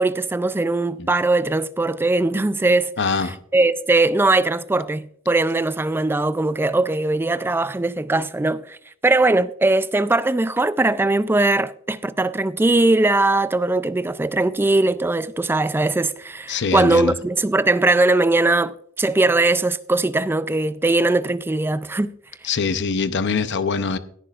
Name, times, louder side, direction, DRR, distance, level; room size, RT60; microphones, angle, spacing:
voice 1, 0.0-2.9 3.5-8.8 9.0-22.1, right 2 dB, 10° right, 0.3 m, -20 dB
voice 2, 3.0-3.4 16.5-17.1 22.4-24.0, left 4 dB, 60° left, 0.7 m, -23 dB
16.5 x 10.0 x 2.4 m
head